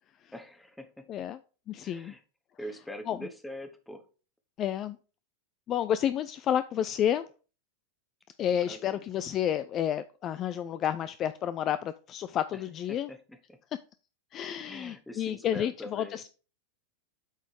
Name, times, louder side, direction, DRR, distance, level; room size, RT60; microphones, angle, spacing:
voice 1, 0.3-1.3 1.8-2.2 2.6-4.0 8.5-9.0 12.5-13.6 14.7-16.2, equal, 5° left, 7 dB, 1.1 m, -44 dB
voice 2, 1.7-2.1 3.1-3.2 4.6-5.0 5.7-7.3 8.4-13.1 14.3-16.3, left 10 dB, 30° left, 13 dB, 0.3 m, -30 dB
8.0 x 4.1 x 4.7 m, 0.36 s
figure-of-eight pair, 90°, 0 cm